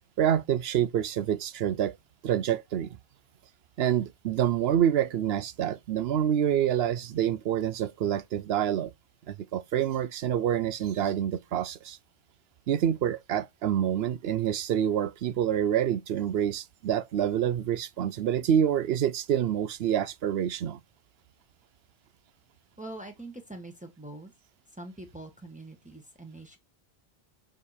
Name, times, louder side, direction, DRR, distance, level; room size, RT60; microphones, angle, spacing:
voice 1, 0.2-2.0 2.2-2.9 3.8-8.9 9.3-12.0 12.7-20.8, right 10 dB, 80° right, 0.8 m, -27 dB
voice 2, 22.8-24.3 24.7-26.6, right 2 dB, 5° right, 1.5 m, -43 dB
6.7 x 5.2 x 4.2 m
omnidirectional pair, 1.0 m